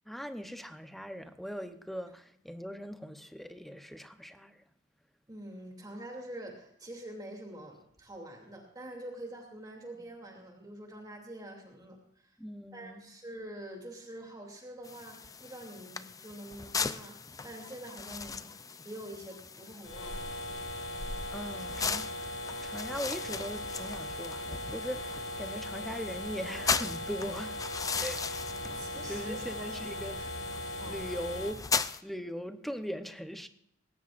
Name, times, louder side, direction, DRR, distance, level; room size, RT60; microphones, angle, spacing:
voice 1, 0.1-4.6 12.4-13.1 21.3-22.3 22.6-27.6 28.0-30.2 30.8-31.7 32.0-33.5, equal, ahead, 0.8 m, -40 dB
voice 2, 5.3-12.4 12.7-17.2 17.4-20.4 28.7-30.3 30.8-31.0, right 1 dB, 20° right, 2.8 m, -46 dB
sound 1, 14.8-32.0, left 5 dB, 20° left, 0.4 m, -38 dB
sound 2, 19.8-31.5, left 1 dB, 75° left, 1.5 m, -39 dB
19.5 x 17.0 x 2.5 m
head